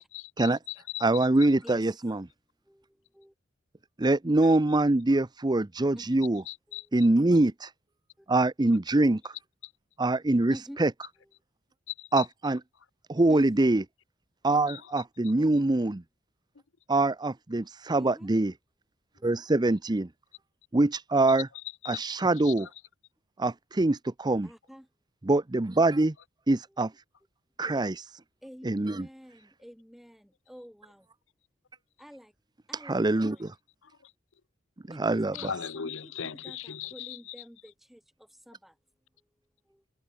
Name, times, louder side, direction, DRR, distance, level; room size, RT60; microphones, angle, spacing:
voice 1, 0.0-1.5 4.4-4.6 6.5-7.1 9.6-9.7 11.9-12.3 14.5-15.4 21.3-22.7 33.8-34.1 35.3-37.4, left 9 dB, 70° left, 0.8 m, -40 dB
voice 2, 1.0-2.3 4.0-6.4 6.9-7.7 8.3-9.3 10.0-10.9 12.1-12.6 13.1-13.8 14.4-16.0 16.9-18.5 19.2-20.1 20.7-21.5 21.9-22.7 23.4-24.5 25.2-26.1 26.5-26.9 27.6-27.9 28.6-29.1 32.9-33.5 34.9-35.5, right 2 dB, 20° right, 0.7 m, -24 dB
voice 3, 13.3-13.7 15.4-15.7 18.0-18.3 19.2-19.3 24.4-24.9 27.6-27.8 28.4-31.1 32.0-32.3 32.7-33.5 34.9-38.0 38.5-38.7 39.7-39.8, equal, ahead, 4.5 m, -49 dB
head